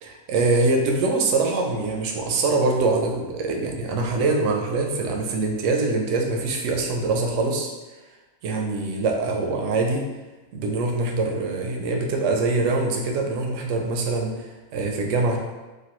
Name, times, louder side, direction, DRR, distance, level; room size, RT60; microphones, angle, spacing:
voice 1, 0.0-7.7 8.4-10.1 10.5-15.4, right 3 dB, 70° right, 1 dB, 0.8 m, -24 dB
3.2 x 2.2 x 2.9 m, 1.2 s
omnidirectional pair, 1.6 m